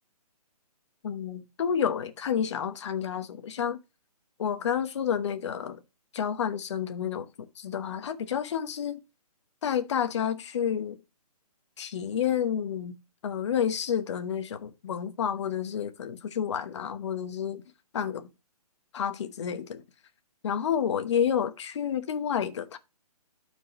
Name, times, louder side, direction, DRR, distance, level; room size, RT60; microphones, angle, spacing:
voice 1, 1.0-3.8 4.4-5.8 6.1-9.0 9.6-11.0 11.8-12.9 13.2-17.6 17.9-18.3 18.9-19.8 20.4-22.8, left 8 dB, 45° left, 1.1 m, -30 dB
12.5 x 4.6 x 3.0 m
hypercardioid pair, 155°, 20 cm